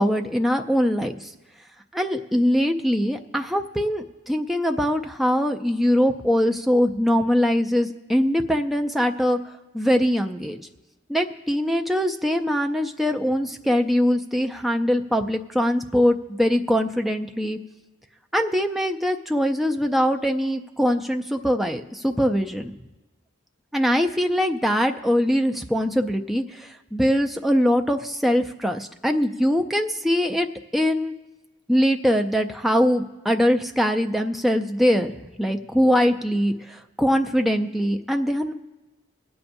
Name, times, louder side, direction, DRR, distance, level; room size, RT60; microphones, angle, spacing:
voice 1, 0.0-1.3 1.9-9.4 9.7-10.6 11.1-17.6 18.3-22.7 23.7-30.5 30.7-31.1 31.7-38.5, equal, ahead, 3 dB, 0.4 m, -22 dB
25.0 x 8.6 x 2.6 m, 1.1 s
head